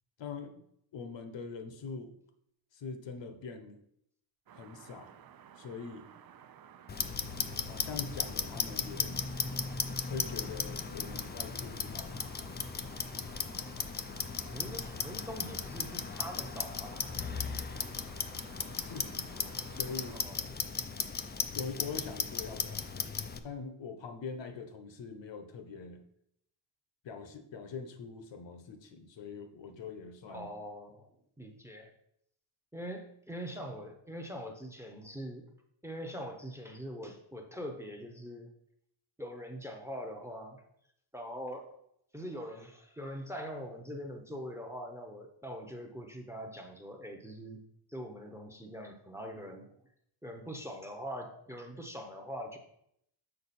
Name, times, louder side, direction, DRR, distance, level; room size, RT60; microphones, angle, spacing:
voice 1, 0.2-0.6 0.9-2.1 2.7-3.8 4.5-5.1 5.6-6.1 7.6-9.3 10.1-12.5 18.8-20.2 21.5-23.1 23.3-26.1 27.0-30.5, left 5 dB, 60° left, 7 dB, 0.9 m, -43 dB
sound 1, 4.5-20.2, right 9 dB, 50° right, 0.5 m, -55 dB
Clock, 6.9-23.4, left 5 dB, 25° left, 0.3 m, -36 dB
voice 2, 14.5-17.1 18.8-18.9 20.1-20.4 30.3-31.1 31.4-31.9 32.7-35.5 35.8-38.5 39.2-40.6 41.1-41.8 42.1-47.6 47.9-49.8 50.2-52.6, equal, 5° right, 3 dB, 0.7 m, -43 dB
6.7 x 5.0 x 4.2 m, 0.73 s
cardioid pair, 125°, 50 cm